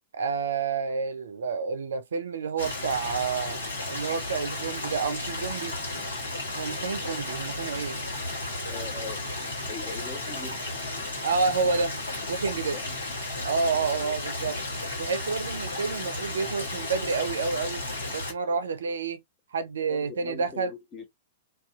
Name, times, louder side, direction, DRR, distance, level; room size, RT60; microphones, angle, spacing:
voice 1, 0.1-3.6 3.9-5.8 6.5-8.0 11.2-12.0 12.3-12.8 13.4-14.6 15.0-17.8 18.1-19.2 19.5-20.7, right 5 dB, 65° right, 0.4 m, -29 dB
Stream, 2.6-18.3, left 2 dB, 70° left, 1.3 m, -34 dB
voice 2, 8.7-9.2 9.7-10.6 12.7-12.9 19.8-21.1, left 4 dB, 20° left, 0.8 m, -40 dB
2.6 x 2.3 x 2.3 m
figure-of-eight pair, 105°, 0 cm